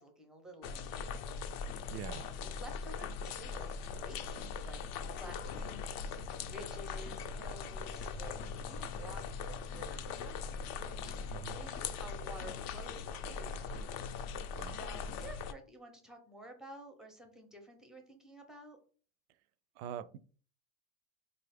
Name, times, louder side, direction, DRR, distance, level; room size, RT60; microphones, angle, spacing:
voice 1, 0.0-1.3 2.2-4.8 5.1-11.1 11.5-13.8 14.7-18.8, right 1 dB, ahead, 0.5 m, -52 dB
sound 1, 0.6-15.5, left 5 dB, 55° left, 0.5 m, -40 dB
voice 2, 1.9-2.3 11.3-11.6 14.6-14.8 19.8-20.2, right 10 dB, 90° right, 0.5 m, -43 dB
3.9 x 2.4 x 3.3 m
supercardioid pair, 140°, 43 cm